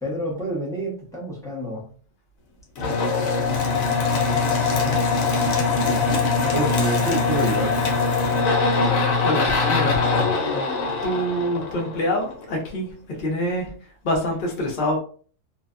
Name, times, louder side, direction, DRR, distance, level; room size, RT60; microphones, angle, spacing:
voice 1, 0.0-1.9 6.5-7.7, right 1 dB, 5° left, -4 dB, 0.5 m, -27 dB
sound 1, 2.8-12.3, left 4 dB, 80° left, 1.1 m, -22 dB
voice 2, 8.8-10.0 11.0-13.7 14.0-15.0, equal, 45° left, -1 dB, 0.8 m, -26 dB
2.6 x 2.2 x 2.4 m, 0.42 s
omnidirectional pair, 1.4 m